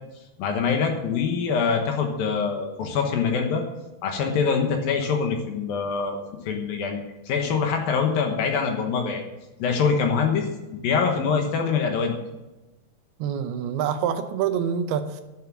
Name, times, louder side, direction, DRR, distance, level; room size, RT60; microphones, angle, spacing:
voice 1, 0.4-3.6 4.0-6.2 6.5-9.2 9.6-10.5 10.8-12.1, left 5 dB, 70° left, 3 dB, 2.7 m, -24 dB
voice 2, 13.2-15.2, right 8 dB, 80° right, 8 dB, 2.5 m, -26 dB
10.5 x 7.5 x 7.6 m, 1.0 s
omnidirectional pair, 4.8 m